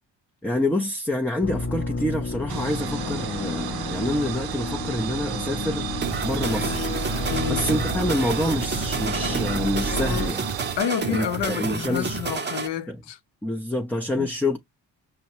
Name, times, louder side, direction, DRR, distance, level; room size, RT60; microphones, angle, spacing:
voice 1, 0.4-5.9 6.2-6.9 7.5-10.5 11.1-12.2 12.9-13.0 13.4-14.6, left 1 dB, 5° left, 0.5 m, -27 dB
sound 1, 1.4-10.3, left 2 dB, 30° left, 0.8 m, -30 dB
sound 2, 2.5-10.8, right 11 dB, 55° right, 0.6 m, -33 dB
sound 3, 6.0-12.7, right 4 dB, 25° right, 0.8 m, -30 dB
voice 2, 7.3-7.7 10.8-13.2 14.2-14.3, left 9 dB, 65° left, 0.8 m, -29 dB
5.3 x 2.2 x 3.0 m
cardioid pair, 75°, 46 cm